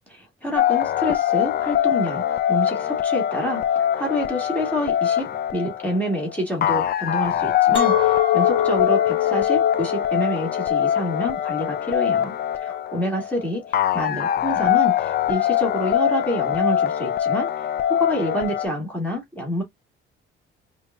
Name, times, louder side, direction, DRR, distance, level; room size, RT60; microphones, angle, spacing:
voice 1, 0.1-12.3 12.6-17.5 18.0-19.6, equal, 5° left, 2.4 m, -27 dB
sound 1, 0.6-18.7, left 10 dB, 50° left, 0.5 m, -23 dB
Chink clink, 7.7-12.9, left 10 dB, 25° left, 1.4 m, -25 dB
4.9 x 2.8 x 2.5 m
cardioid pair, 100°, 21 cm